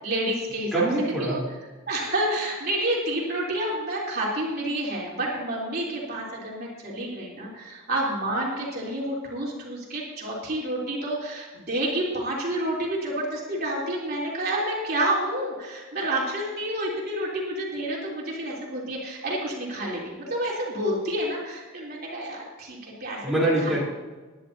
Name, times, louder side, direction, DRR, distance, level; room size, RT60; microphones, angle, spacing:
voice 1, 0.0-0.9 1.2-1.4 1.9-23.2 23.6-23.8, right 1 dB, 50° right, -4 dB, 3.4 m, -29 dB
voice 2, 0.7-1.5 23.2-23.8, right 1 dB, ahead, -8 dB, 3.7 m, -24 dB
20.5 x 11.0 x 2.8 m, 1.3 s
head